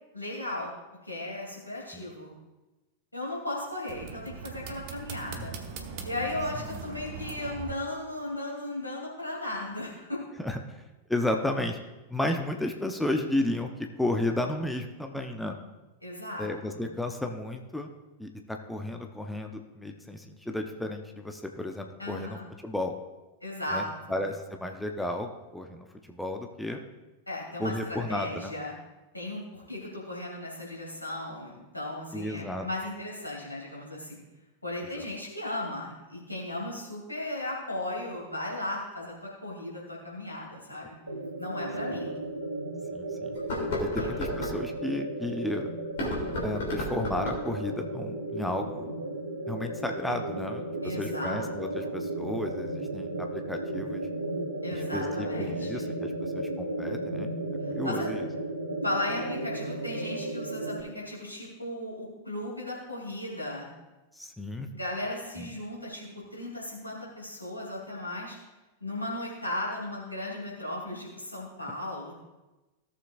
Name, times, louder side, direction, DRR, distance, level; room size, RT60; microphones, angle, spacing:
voice 1, 0.1-0.7 1.0-2.3 3.1-5.5 6.0-10.2 16.0-16.8 22.0-22.5 23.4-24.2 27.3-28.7 29.1-34.2 34.6-39.1 39.4-40.9 41.4-42.1 43.9-44.1 50.8-51.4 51.7-51.9 54.6-55.9 57.6-58.1 58.8-63.7 64.7-68.4 68.8-72.1, left 1 dB, 85° left, -3 dB, 2.9 m, -36 dB
sound 1, 3.9-7.7, right 6 dB, 45° right, 1.0 m, -40 dB
voice 2, 5.3-5.7 6.7-6.8 10.4-10.8 11.1-11.8 12.1-13.7 14.0-15.6 16.4-17.9 18.2-22.9 23.7-23.8 24.1-26.9 27.6-28.5 32.1-32.7 35.0-35.1 41.9-42.0 42.9-43.3 43.8-45.7 46.4-48.9 49.5-54.1 54.7-57.3 57.7-58.3 64.2-64.7 65.4-65.5, left 1 dB, 5° left, 3 dB, 0.8 m, -33 dB
sound 2, 41.1-60.8, right 2 dB, 80° right, 1.0 m, -34 dB
sound 3, 41.4-41.5 42.1-42.2 43.3-44.6 45.8-47.5, left 2 dB, 55° left, 2.8 m, -33 dB
16.5 x 7.0 x 2.5 m, 1.1 s
figure-of-eight pair, 90°, 0 cm